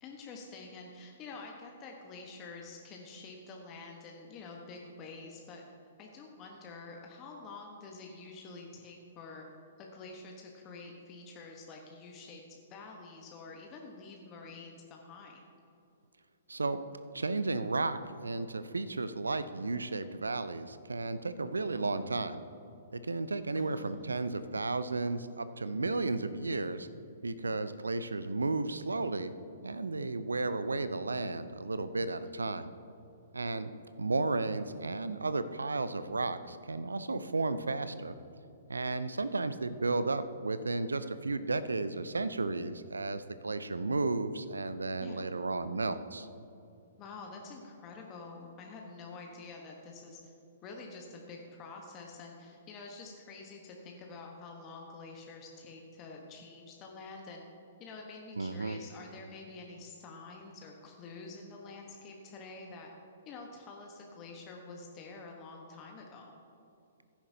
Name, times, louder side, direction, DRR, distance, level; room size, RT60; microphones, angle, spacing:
voice 1, 0.0-5.6 6.0-9.5 9.8-15.4 23.6-24.2 32.1-32.3 45.0-45.3 47.0-50.3 50.6-57.4 57.8-62.9 63.2-66.3, left 3 dB, 30° left, 1 dB, 1.2 m, -48 dB
voice 2, 16.5-16.8 17.1-22.4 22.9-26.9 27.2-29.3 29.6-32.7 33.3-33.7 34.0-38.2 38.7-46.3 58.4-58.8, right 3 dB, 80° right, 13 dB, 0.5 m, -33 dB
16.0 x 10.0 x 2.8 m, 2.6 s
figure-of-eight pair, 120°, 0 cm